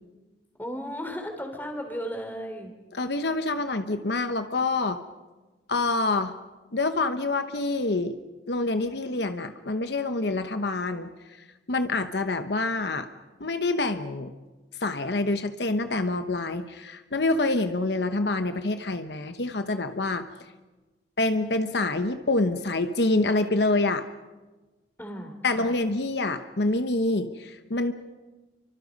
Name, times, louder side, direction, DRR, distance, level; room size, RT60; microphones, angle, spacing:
voice 1, 0.6-2.7 25.0-25.8, equal, 10° left, 5 dB, 3.5 m, -35 dB
voice 2, 2.9-5.0 5.7-6.3 6.7-8.2 8.5-11.1 11.7-13.1 13.4-14.3 14.8-20.2 21.2-24.1 25.4-27.9, left 2 dB, 65° left, 8 dB, 1.0 m, -26 dB
30.0 x 24.5 x 5.4 m, 1.2 s
head